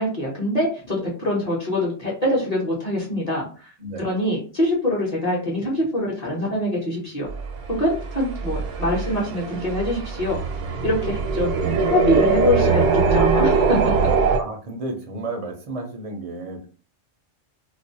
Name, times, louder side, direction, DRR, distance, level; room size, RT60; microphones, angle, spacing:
voice 1, 0.0-3.7 4.0-7.3 7.7-10.4 10.8-13.8, left 1 dB, 40° left, -4 dB, 0.7 m, -24 dB
sound 1, 7.3-14.4, right 5 dB, 80° right, 0.9 m, -22 dB
voice 2, 14.3-16.7, right 2 dB, 45° right, 2 dB, 0.4 m, -32 dB
2.4 x 2.1 x 2.6 m, 0.37 s
omnidirectional pair, 1.3 m